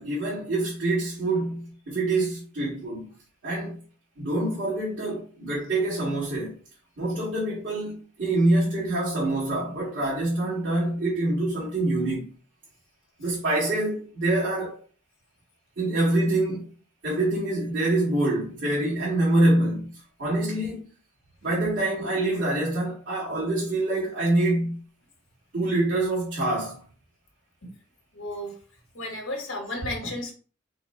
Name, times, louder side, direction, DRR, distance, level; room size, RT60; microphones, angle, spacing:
voice 1, 0.0-3.1 3.4-3.8 4.2-6.5 7.0-12.3 13.2-14.8 15.8-16.6 17.0-19.9 20.2-20.8 21.4-24.8 25.5-26.8, right 2 dB, 55° right, 2.0 m, -25 dB
voice 2, 28.1-28.6 28.9-30.3, left 1 dB, 80° left, 1.3 m, -33 dB
4.1 x 2.2 x 4.3 m
head